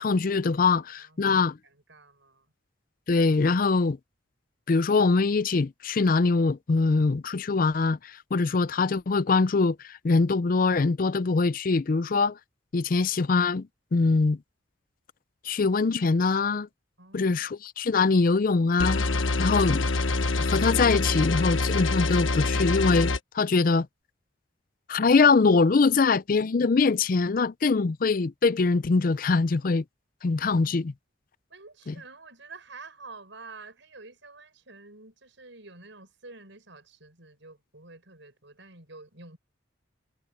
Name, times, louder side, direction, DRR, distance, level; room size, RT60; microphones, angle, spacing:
voice 1, 0.0-1.6 3.1-4.0 4.7-12.4 12.7-14.4 15.4-16.7 17.1-19.1 19.4-19.9 20.4-23.9 24.9-29.8 30.2-30.9 31.9-32.0, left 4 dB, 45° left, 0.4 m, -23 dB
voice 2, 0.7-2.5 17.0-17.5 25.9-26.0 31.5-39.4, right 3 dB, 70° right, 6.0 m, -49 dB
sound 1, 18.8-23.2, left 2 dB, 85° left, 1.3 m, -25 dB
head